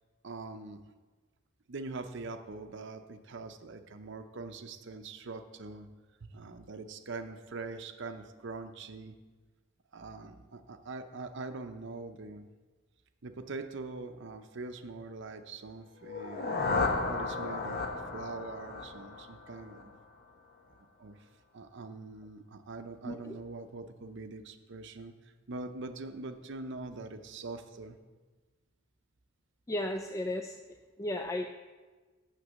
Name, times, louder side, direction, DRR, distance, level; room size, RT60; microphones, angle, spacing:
voice 1, 0.2-0.8 1.7-5.9 6.2-9.2 9.9-12.5 13.2-16.5 17.1-19.9 20.8-21.2 21.5-25.1 25.5-28.0, right 3 dB, 60° right, 8 dB, 0.7 m, -43 dB
sound 1, 16.0-20.0, left 3 dB, 50° left, 0.9 m, -34 dB
voice 2, 23.0-23.4 29.7-31.5, left 1 dB, 15° left, 4 dB, 0.3 m, -35 dB
6.6 x 6.0 x 7.3 m, 1.3 s
head